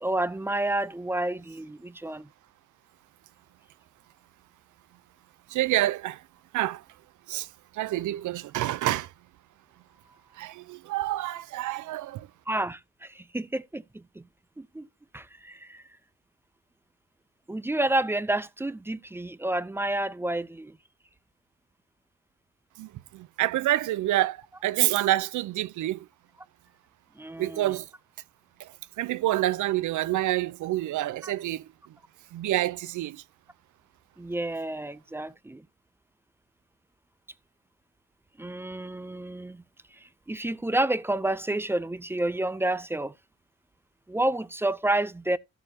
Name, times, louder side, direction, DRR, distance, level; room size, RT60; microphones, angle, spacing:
voice 1, 0.0-2.3 12.5-14.3 14.6-14.9 15.1-15.8 17.5-20.8 27.2-27.7 31.2-31.3 34.2-35.6 38.4-39.6 40.0-43.1 44.1-45.4, right 1 dB, 10° right, 0.4 m, -30 dB
voice 2, 5.5-6.2 6.5-6.8 7.3-7.5 7.7-9.1 10.4-12.3 22.8-26.1 27.4-27.9 28.6-28.7 29.0-31.7 32.3-33.2, right 15 dB, 75° right, 0.7 m, -27 dB
14.0 x 7.0 x 2.8 m
cardioid pair, 135°, 30 cm